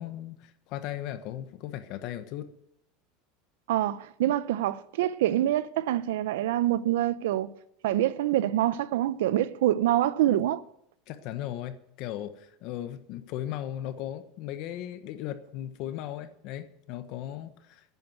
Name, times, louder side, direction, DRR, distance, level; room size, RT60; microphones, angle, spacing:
voice 1, 0.0-2.5 11.1-17.9, left 12 dB, 50° left, 1.2 m, -37 dB
voice 2, 3.7-7.5 7.8-10.6, right 13 dB, 85° right, 0.7 m, -26 dB
10.5 x 9.4 x 7.9 m
supercardioid pair, 150°, 0 cm